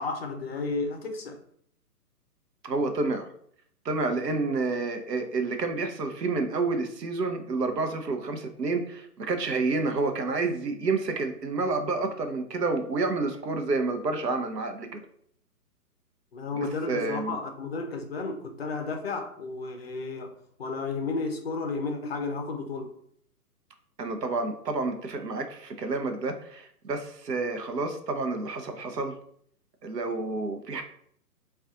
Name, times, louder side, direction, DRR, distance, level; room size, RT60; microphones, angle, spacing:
voice 1, 0.0-1.4 16.3-20.3 20.6-22.9, left 3 dB, 40° left, 0.4 m, -32 dB
voice 2, 2.6-3.3 3.8-15.0 16.9-17.3 24.0-29.2 29.8-30.8, right 3 dB, 85° right, 0.7 m, -29 dB
2.4 x 2.3 x 3.7 m
figure-of-eight pair, 130°, 48 cm